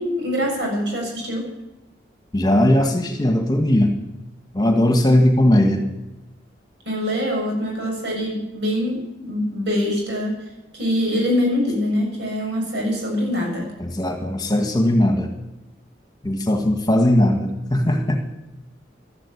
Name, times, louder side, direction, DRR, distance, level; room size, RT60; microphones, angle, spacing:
voice 1, 0.0-1.5 6.8-10.5 10.7-13.7, left 1 dB, 70° right, 0 dB, 7.2 m, -24 dB
voice 2, 2.3-3.9 4.5-5.8 13.8-15.3 16.2-18.2, left 1 dB, 20° left, 4 dB, 1.6 m, -18 dB
13.0 x 12.0 x 8.4 m, 0.96 s
head